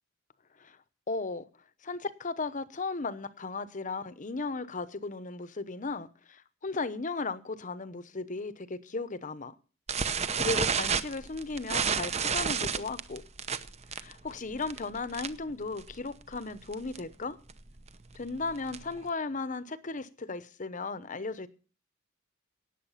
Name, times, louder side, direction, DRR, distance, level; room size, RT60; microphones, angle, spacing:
voice 1, 1.1-1.4 1.8-9.5 10.0-13.2 13.9-17.4 18.1-21.5, left 3 dB, 40° left, 0.9 m, -36 dB
sound 1, 9.9-15.5 15.8-16.1 16.3-16.4 16.7-17.0 17.5-19.0, right 6 dB, 35° right, 0.8 m, -31 dB
18.0 x 7.7 x 5.7 m
head